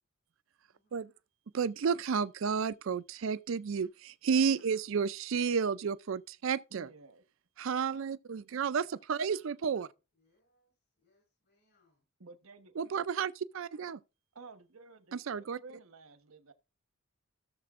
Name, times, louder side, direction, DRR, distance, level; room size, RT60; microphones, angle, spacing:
voice 1, 0.7-1.1 4.4-4.5 8.9-12.0, left 2 dB, 50° left, 4.4 m, -74 dB
voice 2, 1.5-6.9 7.6-9.9 12.8-14.0 15.1-15.6, right 6 dB, 65° right, 0.4 m, -32 dB
voice 3, 6.7-7.2 12.2-12.8 14.3-16.5, right 3 dB, 90° right, 1.2 m, -53 dB
16.5 x 6.8 x 2.5 m
head